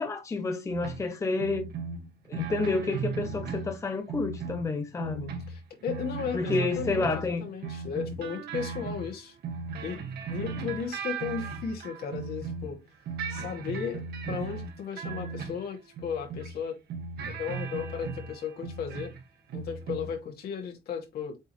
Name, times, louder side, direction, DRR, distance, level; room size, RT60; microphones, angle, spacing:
voice 1, 0.0-1.7 2.3-5.2 6.3-7.5, left 3 dB, 15° left, 0.7 m, -29 dB
sound 1, 0.7-1.1 1.4-3.8 4.1-7.3 7.6-12.8 13.1-16.6 16.9-19.2 19.5-20.2, right 5 dB, 70° right, 1.9 m, -37 dB
voice 2, 5.0-9.4 9.8-10.0 10.3-12.8 13.3-16.8 17.3-19.1 19.5-21.4, left 6 dB, 65° left, 2.5 m, -35 dB
8.2 x 3.8 x 3.2 m
cardioid pair, 165°, 18 cm